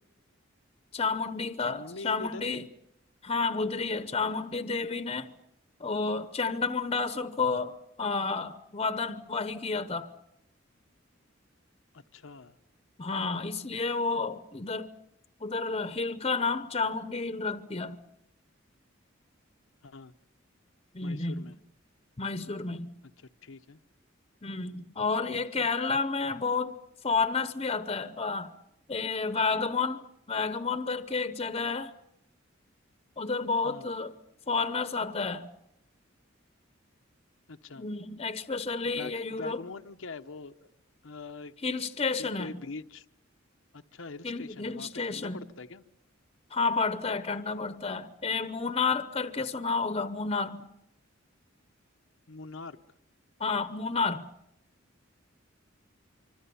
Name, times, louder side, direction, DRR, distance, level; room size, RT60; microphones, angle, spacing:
voice 1, 0.9-2.7 3.2-5.3 5.8-10.1 13.0-14.9 15.4-18.0 20.9-21.5 22.2-22.9 24.4-26.8 27.0-28.5 28.9-30.0 30.3-31.9 33.2-34.1 34.5-35.5 37.8-39.6 41.6-42.6 44.2-45.4 46.5-50.6 53.4-54.3, left 4 dB, 30° left, 0.9 m, -30 dB
voice 2, 1.6-2.7 11.9-12.6 19.8-20.1 21.0-21.6 23.4-23.8 25.3-25.7 33.6-33.9 37.5-37.8 38.9-40.7 41.0-41.5 42.2-43.1 43.7-45.8 52.3-52.8, left 3 dB, 85° left, 0.9 m, -43 dB
25.0 x 25.0 x 7.0 m
head